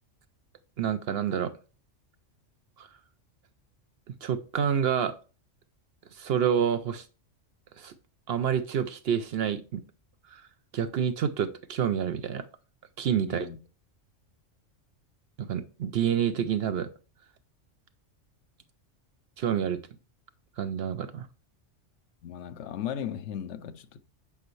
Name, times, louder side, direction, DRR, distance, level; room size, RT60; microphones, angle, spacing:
voice 1, 0.8-1.5 2.8-2.9 4.2-5.1 6.2-7.1 7.8-7.9 8.3-9.8 10.3-10.4 10.7-12.5 13.0-13.5 15.4-16.9 19.4-19.8 20.6-21.3, right 8 dB, 65° right, 0.7 m, -28 dB
voice 2, 13.2-13.6 22.2-24.0, left 9 dB, 70° left, 0.9 m, -36 dB
8.8 x 5.3 x 3.1 m
omnidirectional pair, 1.3 m